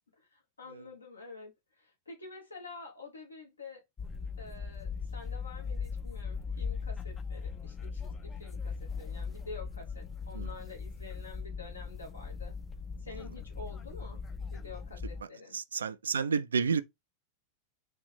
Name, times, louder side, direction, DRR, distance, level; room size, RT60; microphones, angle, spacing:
voice 1, 0.2-3.8 4.4-12.5 13.0-14.2 14.5-15.6, left 3 dB, 75° left, 1.5 m, -48 dB
sound 1, 4.0-15.2, left 5 dB, 20° left, 0.5 m, -39 dB
voice 2, 15.5-16.8, right 5 dB, 70° right, 0.3 m, -31 dB
4.0 x 2.6 x 3.4 m
figure-of-eight pair, 90°, 0 cm